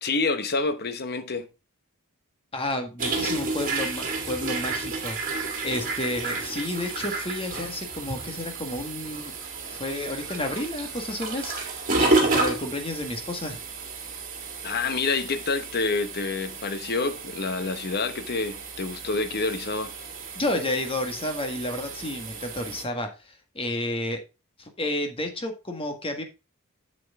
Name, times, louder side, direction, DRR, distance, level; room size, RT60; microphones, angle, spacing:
voice 1, 0.0-1.5 14.6-19.9, left 3 dB, 45° left, 1.0 m, -28 dB
voice 2, 2.5-9.3 9.7-11.5 12.0-13.6 20.3-24.2 24.6-26.2, left 1 dB, 25° left, 1.6 m, -31 dB
sound 1, 3.0-22.8, right 3 dB, 40° right, 2.3 m, -31 dB
8.0 x 7.5 x 3.6 m
head